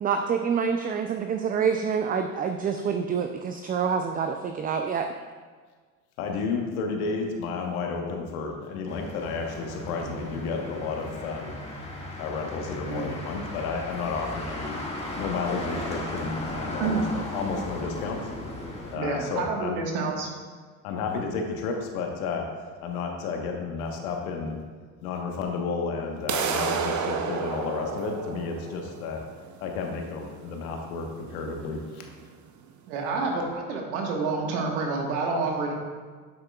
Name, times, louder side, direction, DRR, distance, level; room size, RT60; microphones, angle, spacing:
voice 1, 0.0-5.1, right 6 dB, 20° right, 6 dB, 0.4 m, -27 dB
voice 2, 6.2-11.6 12.2-14.8 15.2-18.3 18.9-19.8 20.8-22.4 22.8-24.6 25.0-29.2 29.6-32.0, left 4 dB, 75° left, 2 dB, 1.2 m, -32 dB
Motor vehicle (road), 8.9-19.0, left 1 dB, 15° left, 1.7 m, -36 dB
voice 3, 19.0-20.3 32.9-35.7, right 4 dB, 70° right, 1 dB, 1.5 m, -28 dB
sound 1, 26.3-32.3, right 6 dB, 40° right, 0.8 m, -32 dB
8.7 x 7.6 x 2.3 m, 1.5 s
hypercardioid pair, 65°, 43 cm